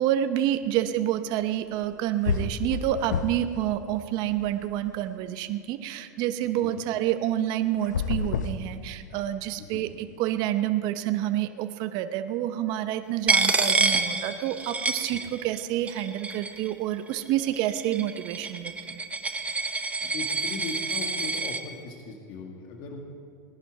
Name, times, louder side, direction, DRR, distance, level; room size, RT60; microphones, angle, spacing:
voice 1, 0.0-19.0, right 12 dB, 50° right, 10 dB, 0.7 m, -28 dB
sound 1, 1.8-1.9 2.2-3.6 3.9-5.0 7.8-9.3, left 5 dB, 90° left, 0.7 m, -30 dB
voice 2, 9.6-9.9 15.1-15.2 20.0-23.0, left 3 dB, 55° left, 2 dB, 1.9 m, -39 dB
Coin (dropping), 13.3-15.6 15.9-16.7 17.4-21.6, right 3 dB, 15° right, 1.0 m, -27 dB
18.5 x 11.0 x 4.7 m, 2.5 s
hypercardioid pair, 100°, 9 cm